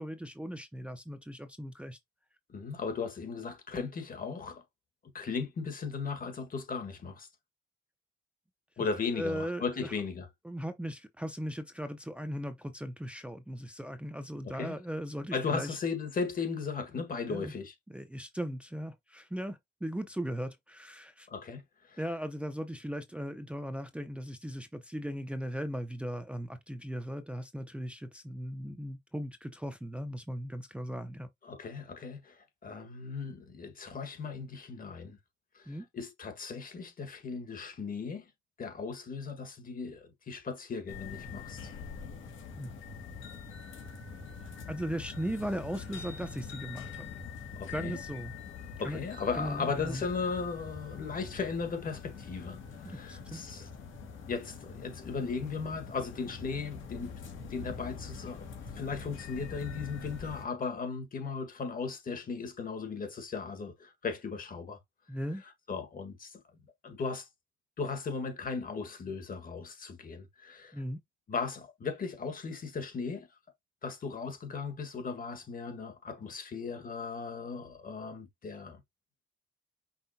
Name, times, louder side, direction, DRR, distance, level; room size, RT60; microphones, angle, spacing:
voice 1, 0.0-2.0 9.1-9.9 10.4-15.8 17.3-17.5 17.9-21.3 22.0-31.3 35.7-35.9 42.6-42.7 44.7-47.1 47.7-48.3 48.8-49.0 49.4-50.0 52.8-53.4 65.1-65.4 70.7-71.0, equal, 5° right, 0.6 m, -38 dB
voice 2, 2.5-4.6 5.1-7.3 8.8-10.3 14.4-14.7 15.3-17.7 21.3-22.0 31.4-35.2 35.5-38.2 38.6-41.7 47.6-48.0 48.8-53.7 54.3-58.5 58.7-64.8 65.7-66.4 66.8-67.3 67.8-70.8 71.3-73.3 73.8-78.8, left 5 dB, 45° left, 1.6 m, -37 dB
sound 1, 40.9-60.4, left 5 dB, 80° left, 1.8 m, -44 dB
5.7 x 3.3 x 2.7 m
cardioid pair, 90°, 20 cm